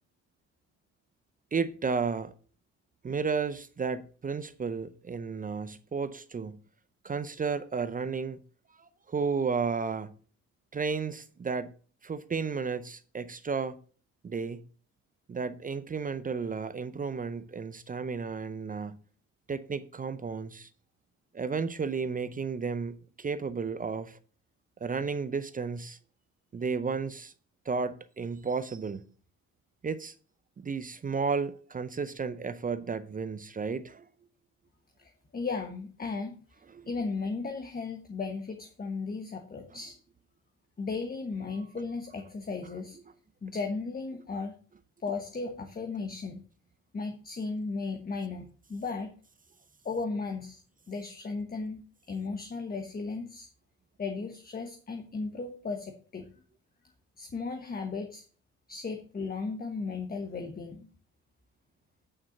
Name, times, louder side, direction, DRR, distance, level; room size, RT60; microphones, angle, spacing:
voice 1, 1.5-2.3 3.0-6.6 7.0-8.4 8.8-10.1 10.7-11.7 12.0-13.8 14.2-14.6 15.3-19.0 19.5-20.7 21.3-24.2 24.8-26.0 26.5-27.3 27.7-29.0 29.8-30.1 30.6-34.1 36.7-36.9, right 5 dB, 30° right, 0.6 m, -33 dB
voice 2, 35.0-36.4 36.9-40.0 40.8-43.0 43.4-44.5 45.0-46.4 46.9-49.1 49.8-50.6 50.9-51.8 52.1-53.5 54.0-56.3 57.2-58.2 58.7-60.9, left 4 dB, 30° left, 1.1 m, -35 dB
8.8 x 4.3 x 6.4 m
cardioid pair, 90°, 30 cm